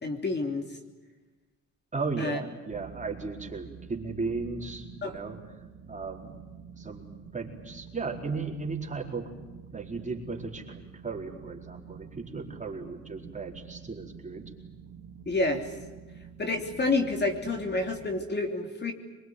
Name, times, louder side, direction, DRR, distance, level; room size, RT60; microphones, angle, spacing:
voice 1, 0.0-0.7 2.2-2.4 5.0-5.2 15.3-15.7 16.4-18.9, left 3 dB, 35° left, 3 dB, 3.2 m, -29 dB
voice 2, 1.9-5.4 5.9-6.3 6.8-7.1 7.3-9.3 9.7-14.5, right 4 dB, 25° right, 0 dB, 4.5 m, -35 dB
sound 1, 2.7-18.2, right 7 dB, 85° right, 2.3 m, -48 dB
24.5 x 22.0 x 9.5 m, 1.2 s
cardioid pair, 90°, 30 cm